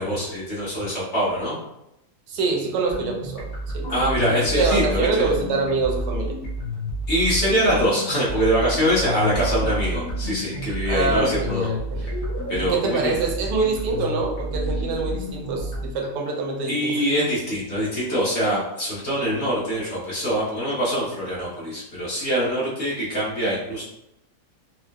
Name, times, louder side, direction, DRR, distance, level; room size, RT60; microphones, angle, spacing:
voice 1, 0.0-1.6 3.9-5.3 7.1-11.7 12.0-12.1 12.5-13.1 16.7-23.8, equal, 45° left, -8 dB, 1.4 m, -24 dB
voice 2, 2.3-3.5 3.7-3.9 4.5-6.4 10.9-12.2 12.6-17.0, right 4 dB, 80° right, 1 dB, 1.2 m, -25 dB
sound 1, 2.9-15.9, equal, 60° left, 1.3 m, -29 dB
4.3 x 2.1 x 2.3 m, 0.83 s
omnidirectional pair, 1.8 m